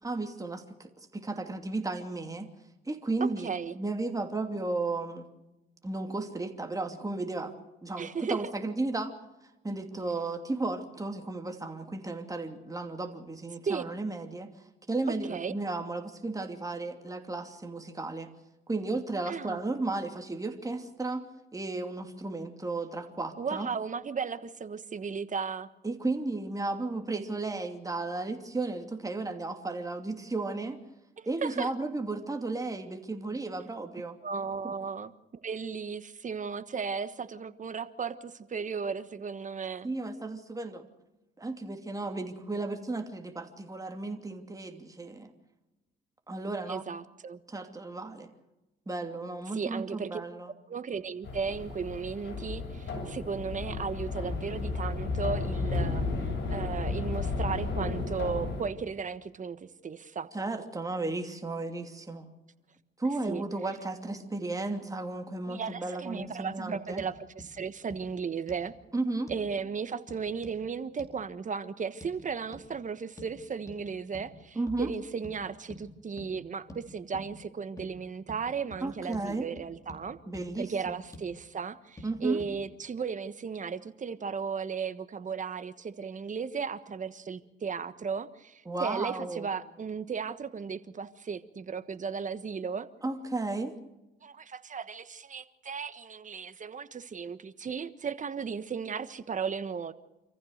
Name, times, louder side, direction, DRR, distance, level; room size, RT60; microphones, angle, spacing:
voice 1, 0.0-2.5 2.9-5.3 5.8-7.5 7.8-9.1 9.6-14.5 14.9-18.3 18.7-21.3 21.5-23.7 25.8-30.8 31.3-34.2 34.6-34.7 39.8-40.8 41.4-45.3 46.3-46.8 47.5-48.3 48.9-50.5 60.3-62.3 63.0-67.0 68.9-69.3 74.5-74.9 78.8-79.4 80.3-81.0 82.0-82.4 88.7-89.5 93.0-93.8, right 2 dB, 15° right, 4 dB, 2.7 m, -34 dB
voice 2, 3.2-3.7 8.0-8.5 13.7-13.8 15.3-15.5 19.3-19.6 23.4-25.7 31.2-31.7 34.2-39.9 46.7-47.4 49.5-50.2 50.7-60.3 63.3-63.4 65.4-68.7 69.3-80.2 80.6-92.9 94.2-99.9, right 6 dB, 40° right, 12 dB, 1.4 m, -35 dB
sound 1, 51.2-58.6, left 3 dB, 65° left, 7.6 m, -33 dB
sound 2, 67.0-67.1 67.4-67.5 67.9-68.0 68.5-68.7 69.3-69.5 70.1-70.6 71.0-71.1 72.0-72.1 72.5-72.7 73.2-73.4 73.7-73.8 74.1-74.3 74.7-74.9 75.2-75.4 75.7-75.8 76.2-76.3 76.7-76.8 77.1-77.3 77.8-77.9 78.3-78.4 78.7-78.8 79.1-79.3 79.6-80.0 80.3-80.5 80.9-81.3 82.0-82.1 82.4-82.5, equal, 15° left, 4.7 m, -47 dB
27.0 x 15.0 x 6.6 m, 1.0 s
cardioid pair, 90°, 20 cm